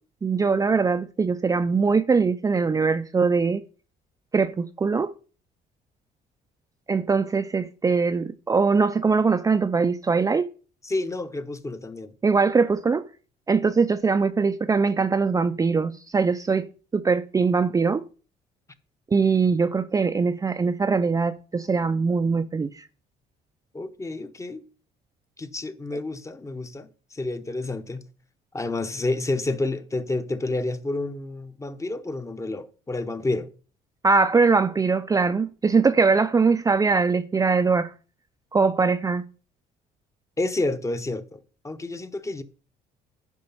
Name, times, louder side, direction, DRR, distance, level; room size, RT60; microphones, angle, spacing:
voice 1, 0.2-3.6 4.3-5.1 6.9-10.5 12.2-13.0 13.5-18.0 19.1-22.8 34.0-37.9 38.5-39.2, right 4 dB, 20° right, 0.5 m, -22 dB
voice 2, 10.8-12.1 23.7-24.6 25.4-28.0 28.5-33.5 40.4-42.4, left 2 dB, 15° left, 0.9 m, -29 dB
10.5 x 5.4 x 5.5 m
cardioid pair, 110°, 17 cm